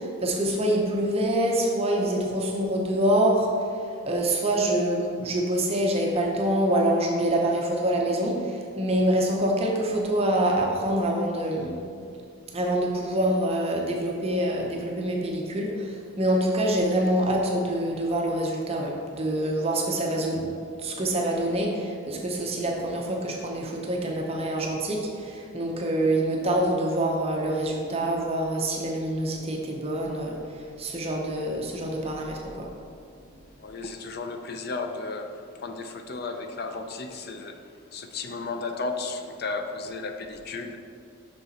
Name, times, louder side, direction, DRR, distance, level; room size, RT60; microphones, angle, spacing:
voice 1, 0.0-3.5 4.0-11.8 12.5-20.5 20.8-30.4 30.8-32.7, right 1 dB, 30° right, 0 dB, 0.7 m, -26 dB
voice 2, 33.6-40.8, left 3 dB, 50° left, 6 dB, 0.5 m, -34 dB
6.5 x 6.0 x 4.1 m, 2.4 s
head